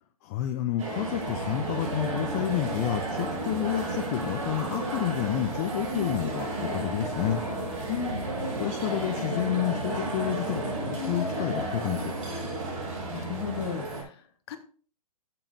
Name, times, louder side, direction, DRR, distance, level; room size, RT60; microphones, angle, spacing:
voice 1, 0.2-7.4 8.6-12.1, left 12 dB, 25° left, 6 dB, 0.5 m, -30 dB
sound 1, 0.8-14.0, right 1 dB, 55° right, 4.6 m, -33 dB
sound 2, 0.9-13.7, right 5 dB, 80° right, 1.1 m, -40 dB
voice 2, 7.9-8.2 13.1-14.6, left 7 dB, 40° left, 7 dB, 1.3 m, -35 dB
11.0 x 7.2 x 2.6 m, 0.42 s
hypercardioid pair, 145°, 20 cm